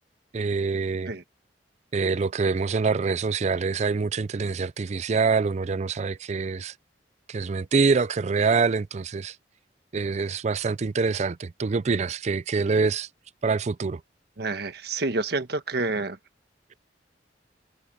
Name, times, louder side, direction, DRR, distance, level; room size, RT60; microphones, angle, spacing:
voice 1, 0.3-1.1 1.9-6.7 7.3-9.4 9.9-13.1 13.4-14.0, right 4 dB, 40° right, 0.4 m, -25 dB
voice 2, 14.4-16.2, right 3 dB, 65° right, 1.4 m, -28 dB
head